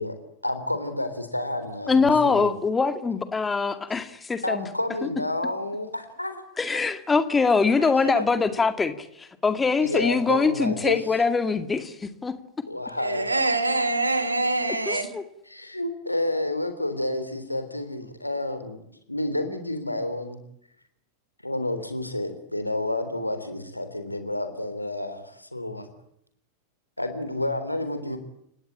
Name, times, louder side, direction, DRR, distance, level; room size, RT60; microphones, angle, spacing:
voice 1, 0.4-2.5 4.4-6.4 7.8-8.3 9.8-11.0 12.7-13.4 15.4-18.8 19.1-20.4 21.4-25.9 27.0-28.2, left 1 dB, 85° left, 9 dB, 3.6 m, -30 dB
voice 2, 1.9-4.7 6.6-12.3 14.9-15.2, left 4 dB, 15° left, 11 dB, 2.1 m, -23 dB
voice 3, 13.0-15.1, right 2 dB, 80° right, 12 dB, 3.1 m, -24 dB
30.0 x 17.5 x 8.7 m, 0.76 s
figure-of-eight pair, 90°, 0 cm